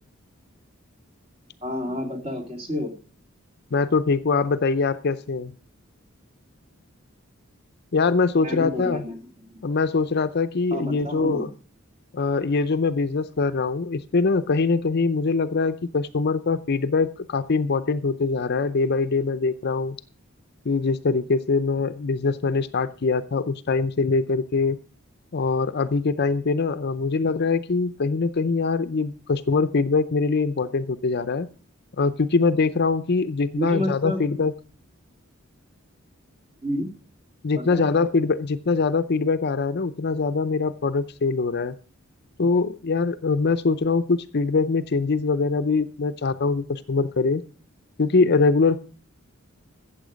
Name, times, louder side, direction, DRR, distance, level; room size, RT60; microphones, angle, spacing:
voice 1, 1.6-2.9 8.4-9.6 10.7-11.5 33.6-34.2 36.6-36.9 37.5-37.8, left 1 dB, 30° right, 3 dB, 2.6 m, -30 dB
voice 2, 3.7-5.5 7.9-9.0 9.6-11.5 12.1-20.0 20.6-24.8 25.3-31.5 32.0-34.5 37.4-41.8 42.4-47.4 48.0-48.8, left 4 dB, 50° left, 12 dB, 0.6 m, -23 dB
15.0 x 7.5 x 5.1 m, 0.40 s
head